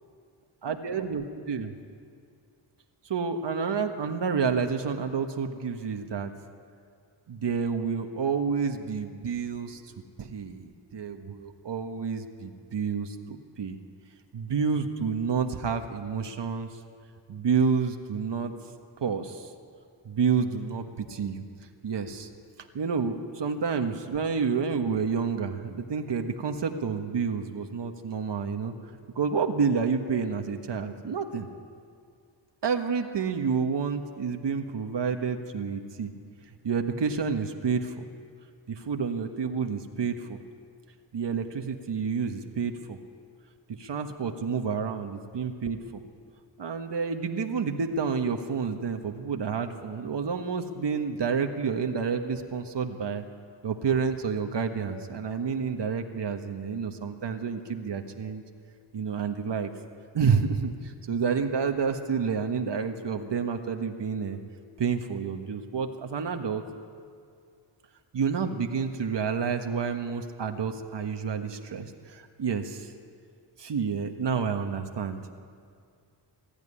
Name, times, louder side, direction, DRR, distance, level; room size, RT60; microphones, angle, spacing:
voice 1, 0.6-1.7 3.0-6.3 7.3-9.9 10.2-13.8 14.3-16.7 17.3-18.5 19.0-19.5 20.0-21.4 21.8-22.3 22.7-28.7 29.1-31.5 32.6-36.1 36.6-38.0 38.7-40.4 41.1-43.0 43.8-45.8 46.6-53.2 53.6-58.4 58.9-59.7 60.1-64.4 64.8-66.6 68.1-72.9 73.6-75.3, right 6 dB, 65° right, 5 dB, 1.5 m, -29 dB
21.5 x 13.5 x 9.9 m, 2.2 s
cardioid pair, 75°, 45 cm